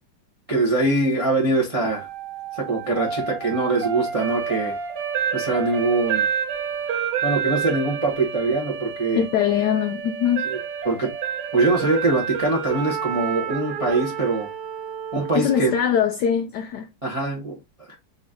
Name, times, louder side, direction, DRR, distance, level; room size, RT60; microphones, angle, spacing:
voice 1, 0.5-2.1 2.5-4.8 5.3-6.2 7.2-9.2 10.4-10.6 10.8-11.1 11.5-14.5 15.1-15.7 17.0-17.6 17.9-18.0, right 2 dB, 40° right, 0.4 m, -23 dB
sound 1, 1.8-15.9, right 7 dB, 85° right, 1.8 m, -29 dB
voice 2, 9.2-10.5 15.3-16.9, left 9 dB, 80° left, 0.9 m, -22 dB
3.9 x 2.7 x 3.5 m
omnidirectional pair, 2.3 m